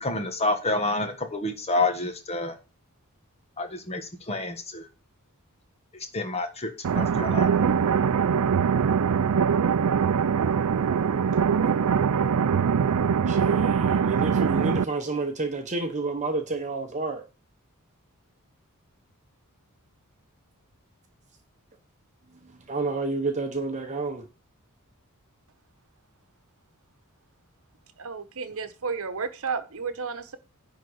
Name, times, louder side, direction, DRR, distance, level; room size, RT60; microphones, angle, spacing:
voice 1, 0.0-2.5 3.6-4.8 6.1-7.5, left 2 dB, 30° left, 1.4 m, -28 dB
sound 1, 6.8-14.8, right 6 dB, 85° right, 0.5 m, -22 dB
voice 2, 13.3-17.2 22.7-24.2, right 3 dB, 35° right, 0.9 m, -30 dB
voice 3, 28.0-30.4, right 5 dB, 65° right, 1.0 m, -32 dB
10.5 x 3.8 x 6.4 m
head